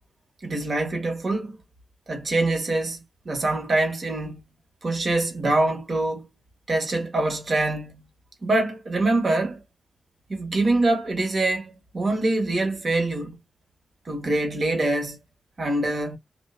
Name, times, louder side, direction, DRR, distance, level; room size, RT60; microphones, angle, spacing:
voice 1, 0.4-1.5 2.1-3.0 3.2-4.4 4.8-6.3 6.7-8.0 8.4-9.6 10.3-13.3 14.0-15.2 15.6-16.2, right 2 dB, 50° right, 1.2 m, -24 dB
2.5 x 2.1 x 2.4 m
cardioid pair, 60°, 0 cm